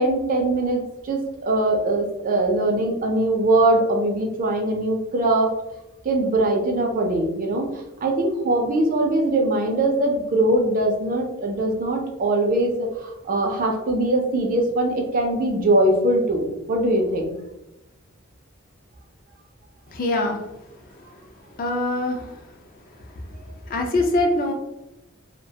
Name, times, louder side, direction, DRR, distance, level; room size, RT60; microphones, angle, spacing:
voice 1, 0.0-5.5 6.0-17.3, right 1 dB, 40° right, 2 dB, 0.4 m, -22 dB
voice 2, 19.9-20.4 20.9-21.2 21.6-22.5 23.1-23.3 23.6-24.5, left 2 dB, 40° left, 3 dB, 0.4 m, -24 dB
2.3 x 2.2 x 2.7 m, 0.92 s
head